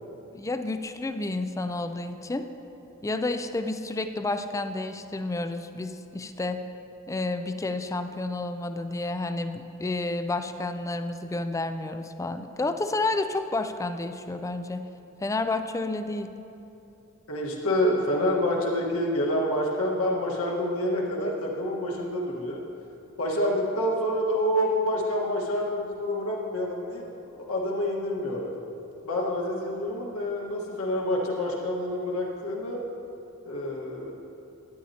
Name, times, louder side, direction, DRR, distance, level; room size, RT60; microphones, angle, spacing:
voice 1, 0.3-2.5 3.0-6.6 7.1-14.8 15.2-16.3, left 2 dB, 15° left, 8 dB, 0.3 m, -30 dB
voice 2, 17.3-22.6 23.2-28.5 29.0-32.8 33.4-34.1, left 1 dB, 70° left, -2 dB, 1.5 m, -27 dB
12.5 x 10.0 x 2.8 m, 2.8 s
head